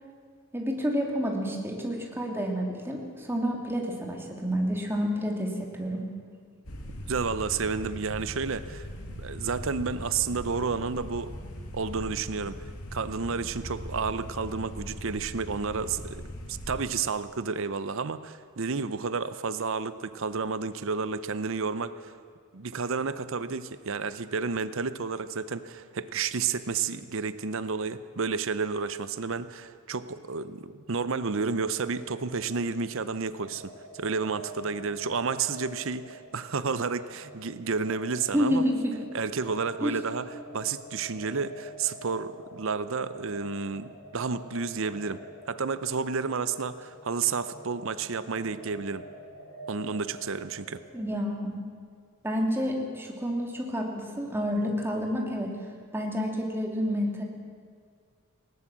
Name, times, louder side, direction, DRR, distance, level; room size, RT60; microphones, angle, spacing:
voice 1, 0.5-6.0 38.3-39.0 39.8-40.0 50.9-51.7 52.2-55.5 55.9-57.2, equal, 10° right, 0 dB, 2.6 m, -29 dB
sound 1, 6.7-16.8, equal, 85° left, 2.3 m, -40 dB
voice 2, 7.1-11.3 11.7-22.1 22.5-38.6 39.1-45.2 45.5-49.1 49.7-50.8, right 5 dB, 60° right, 13 dB, 0.7 m, -31 dB
sound 2, 31.2-51.2, right 1 dB, 65° left, 5.2 m, -48 dB
19.5 x 18.0 x 7.5 m, 2.1 s
head